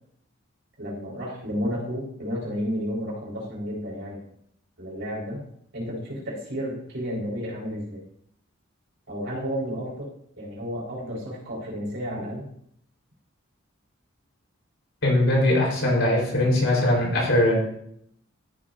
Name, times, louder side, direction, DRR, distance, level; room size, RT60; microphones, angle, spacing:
voice 1, 0.8-4.2 4.8-5.4 5.7-8.0 9.1-10.1 10.4-12.5, equal, 65° right, -4 dB, 4.6 m, -32 dB
voice 2, 15.0-17.5, left 1 dB, 75° left, -2 dB, 4.2 m, -21 dB
13.5 x 8.6 x 2.7 m, 0.69 s
head